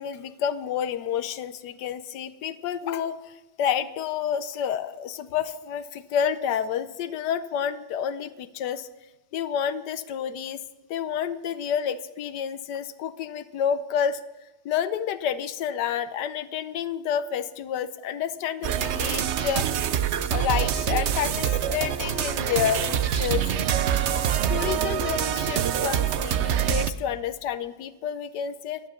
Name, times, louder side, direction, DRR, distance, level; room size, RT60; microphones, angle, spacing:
voice 1, 0.0-8.9 9.3-10.6 10.9-14.2 14.6-19.7 20.3-23.5 24.5-28.8, left 8 dB, 75° left, 12 dB, 1.2 m, -29 dB
sound 1, 18.6-26.9, right 9 dB, 80° right, 0.6 m, -25 dB
12.0 x 10.0 x 7.1 m, 1.1 s
omnidirectional pair, 1.9 m